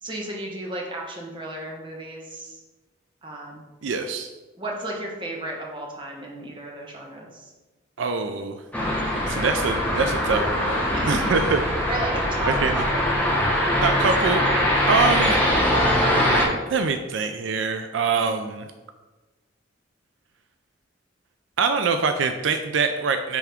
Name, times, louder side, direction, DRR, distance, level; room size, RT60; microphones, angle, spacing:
voice 1, 0.0-2.6 3.2-3.6 4.6-7.5 10.9-11.2 11.9-13.1, right 1 dB, 25° right, -2 dB, 1.2 m, -33 dB
voice 2, 3.8-4.3 8.0-8.6 9.3-11.6 12.5-12.8 13.8-14.4 14.9-15.4 16.7-18.7 21.6-23.4, right 4 dB, 75° right, 7 dB, 0.4 m, -24 dB
sound 1, 8.7-16.5, equal, 10° left, 1.1 m, -22 dB
10.0 x 3.5 x 3.5 m, 1.2 s
head